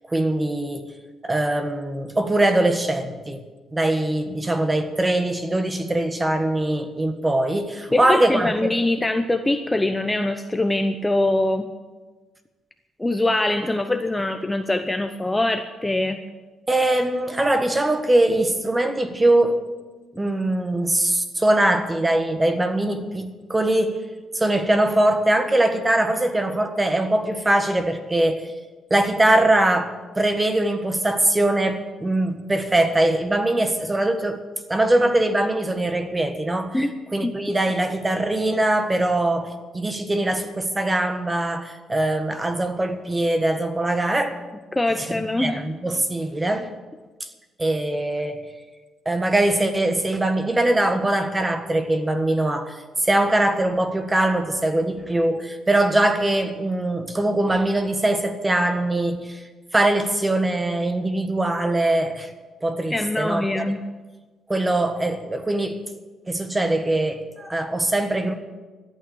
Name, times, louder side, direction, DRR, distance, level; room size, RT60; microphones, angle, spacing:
voice 1, 0.1-0.9 1.2-3.4 3.7-8.8 16.7-19.6 20.2-24.0 24.3-28.5 28.9-34.4 34.7-36.8 37.1-44.4 45.0-46.7 47.2-47.3 47.6-48.4 49.0-59.4 59.7-62.3 62.6-63.6 64.5-65.8 66.3-68.3, right 1 dB, 20° right, 1.6 m, -22 dB
voice 2, 7.9-11.7 13.0-16.2 36.7-36.9 37.2-37.3 44.7-45.6 62.9-63.8, left 2 dB, 10° left, 0.8 m, -23 dB
13.5 x 9.0 x 8.9 m
cardioid pair, 90°, 0 cm